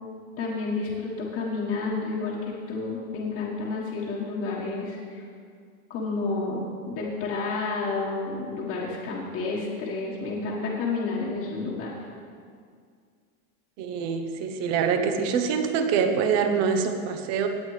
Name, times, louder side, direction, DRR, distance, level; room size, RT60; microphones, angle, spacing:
voice 1, 0.4-5.2 5.9-11.9, left 3 dB, 30° left, -6 dB, 1.5 m, -30 dB
voice 2, 13.8-17.5, right 6 dB, 35° right, 6 dB, 1.0 m, -25 dB
18.0 x 8.5 x 3.3 m, 2.2 s
supercardioid pair, 150°, 45 cm